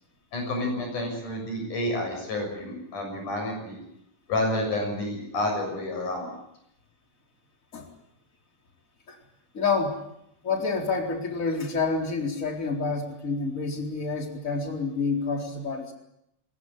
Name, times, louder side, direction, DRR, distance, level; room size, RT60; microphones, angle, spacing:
voice 1, 0.3-3.8 4.3-6.3, left 1 dB, 70° left, 2 dB, 8.3 m, -29 dB
voice 2, 9.5-10.0 10.4-15.9, left 4 dB, 25° left, 3 dB, 4.3 m, -28 dB
22.5 x 20.0 x 9.9 m, 0.79 s
omnidirectional pair, 3.7 m